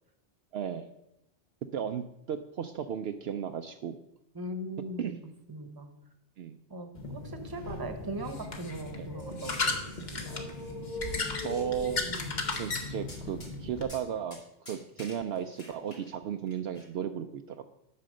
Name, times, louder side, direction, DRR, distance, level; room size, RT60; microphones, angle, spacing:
voice 1, 0.5-0.9 1.7-4.0 5.0-5.2 6.4-6.6 8.9-9.1 11.4-12.2 12.6-17.6, right 8 dB, 70° right, 7 dB, 0.8 m, -35 dB
voice 2, 4.3-5.2 5.5-5.9 6.7-10.4, right 1 dB, 20° right, 7 dB, 1.0 m, -40 dB
sound 1, 6.9-13.9, left 3 dB, 45° left, 1.1 m, -35 dB
sound 2, 9.2-10.7 11.0-11.6 12.1-12.3 12.5-12.7 13.1-13.5 13.8-14.0 14.3-14.4 14.7-16.1 16.5-16.8, left 1 dB, 65° left, 2.9 m, -49 dB
8.5 x 6.3 x 6.3 m, 0.85 s
omnidirectional pair, 1.2 m